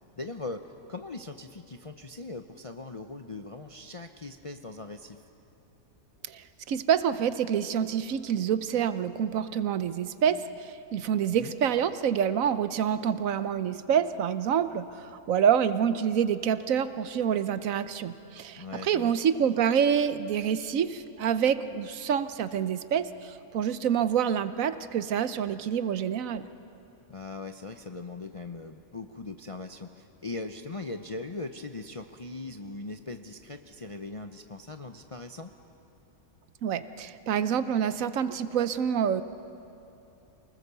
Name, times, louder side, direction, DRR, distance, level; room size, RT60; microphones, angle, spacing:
voice 1, 0.2-5.2 11.3-11.5 18.6-19.1 27.1-35.5, left 3 dB, 40° left, 6 dB, 0.5 m, -40 dB
voice 2, 6.3-26.4 36.6-39.2, right 8 dB, 70° right, 12 dB, 1.1 m, -27 dB
28.5 x 20.0 x 6.9 m, 2.9 s
omnidirectional pair, 1.5 m